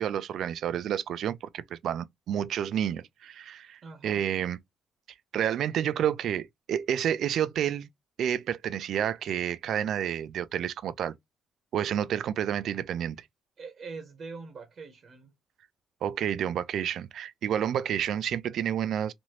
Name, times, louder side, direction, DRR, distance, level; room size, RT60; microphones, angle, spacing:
voice 1, 0.0-4.6 5.3-7.9 8.2-11.2 11.7-13.2 16.0-19.1, right 9 dB, 70° right, 0.3 m, -30 dB
voice 2, 3.8-4.2 13.6-15.3, right 4 dB, 50° right, 0.8 m, -43 dB
3.0 x 2.6 x 2.8 m
cardioid pair, 90°, 0 cm